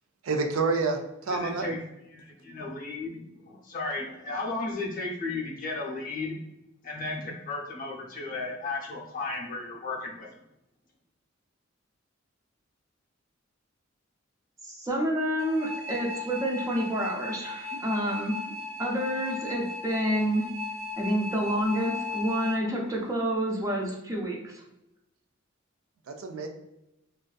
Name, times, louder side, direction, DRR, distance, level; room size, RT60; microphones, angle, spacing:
voice 1, 0.2-1.7 26.1-26.5, right 3 dB, 85° right, 4 dB, 0.4 m, -28 dB
voice 2, 1.3-1.8 2.1-6.4 6.8-10.3, left 3 dB, 40° left, -2 dB, 0.5 m, -34 dB
voice 3, 14.6-18.4 18.8-20.5 21.0-24.6, equal, 15° right, -2 dB, 0.3 m, -28 dB
sound 1, 15.4-22.6, left 2 dB, 65° right, 1.0 m, -37 dB
2.5 x 2.3 x 2.2 m, 0.87 s
head